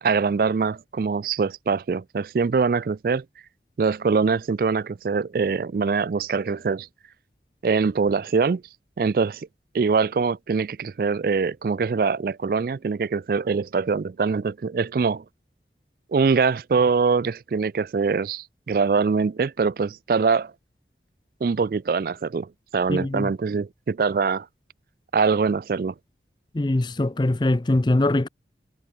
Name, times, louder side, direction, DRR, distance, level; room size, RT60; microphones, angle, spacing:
voice 1, 0.0-3.2 3.8-6.9 7.6-8.6 9.0-9.5 9.7-15.2 16.1-20.5 21.4-24.5 25.1-25.9, right 5 dB, 55° right, 0.3 m, -23 dB
voice 2, 22.9-23.3 26.5-28.3, left 2 dB, 25° left, 0.5 m, -22 dB
head